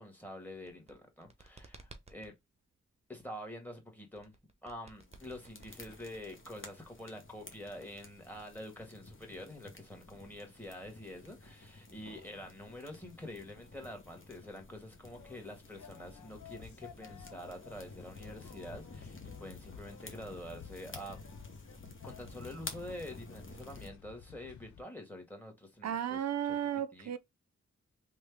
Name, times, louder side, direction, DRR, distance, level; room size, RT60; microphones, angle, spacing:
voice 1, 0.0-2.3 3.1-4.3 4.6-21.2 22.0-26.2 26.9-27.2, left 1 dB, 5° left, 1.6 m, -47 dB
sound 1, 0.5-2.3 4.1-6.7, right 3 dB, 20° right, 0.8 m, -55 dB
sound 2, 5.0-23.9, left 2 dB, 45° left, 1.0 m, -52 dB
sound 3, 15.1-24.8, left 7 dB, 75° left, 0.6 m, -53 dB
voice 2, 25.8-27.2, right 9 dB, 65° right, 0.5 m, -34 dB
3.2 x 2.3 x 3.4 m
cardioid pair, 50°, 29 cm